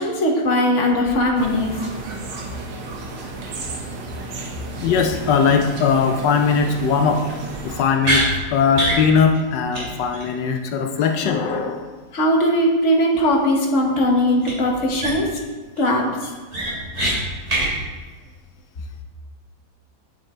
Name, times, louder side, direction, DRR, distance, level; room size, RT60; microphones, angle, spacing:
voice 1, 0.0-1.7 12.1-15.3 15.8-16.1, equal, 45° left, 0 dB, 1.5 m, -19 dB
sound 1, 1.3-7.8, right 3 dB, 85° right, 1.7 m, -33 dB
voice 2, 4.8-7.2 7.8-11.9, left 6 dB, 85° left, 4 dB, 1.3 m, -19 dB
sound 2, 8.0-8.3 8.7-9.0 9.3-9.4 9.7-9.9 10.1-10.2 14.4-14.5 15.0-15.4 15.8-15.9 16.2-17.1 17.5-17.7, right 1 dB, 40° right, 2.9 m, -22 dB
9.1 x 6.5 x 4.3 m, 1.3 s
omnidirectional pair, 1.9 m